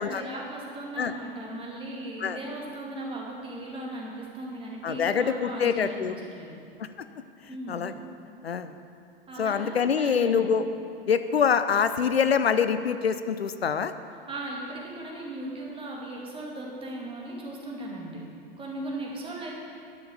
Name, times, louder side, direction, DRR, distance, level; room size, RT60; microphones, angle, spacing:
voice 1, 0.0-6.0 6.3-6.5 7.5-7.8 9.3-10.5 14.3-18.2 18.6-19.6, right 1 dB, 15° right, -2 dB, 2.3 m, -37 dB
voice 2, 4.8-6.2 7.7-7.9 8.4-8.7 9.4-10.6 11.1-13.9, left 7 dB, 85° left, 11 dB, 0.6 m, -25 dB
11.0 x 7.0 x 6.7 m, 2.4 s
figure-of-eight pair, 95°, 30 cm